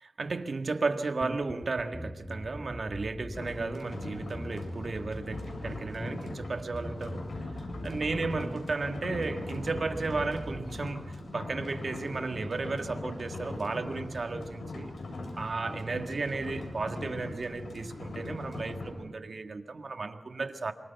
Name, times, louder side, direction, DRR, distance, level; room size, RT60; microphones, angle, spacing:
voice 1, 0.2-7.2 7.8-14.9 15.4-20.7, right 3 dB, 65° right, 1.8 m, -34 dB
sound 1, 1.2-10.8, equal, 10° left, 1.7 m, -42 dB
sound 2, 3.3-18.9, left 2 dB, 75° left, 7.5 m, -40 dB
27.5 x 25.5 x 6.0 m
cardioid pair, 50°, 0 cm